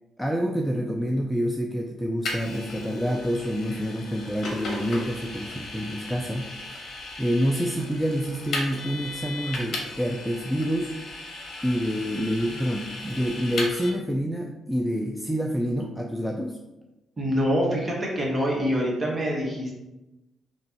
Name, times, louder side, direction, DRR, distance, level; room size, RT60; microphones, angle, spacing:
voice 1, 0.2-11.0 11.6-16.6, equal, ahead, 1 dB, 0.3 m, -27 dB
Vehicle, 2.3-13.9, left 2 dB, 55° left, 1.0 m, -36 dB
voice 2, 17.2-19.8, equal, 25° right, -2 dB, 1.2 m, -25 dB
4.2 x 3.1 x 2.8 m, 0.99 s
cardioid pair, 90°, 0 cm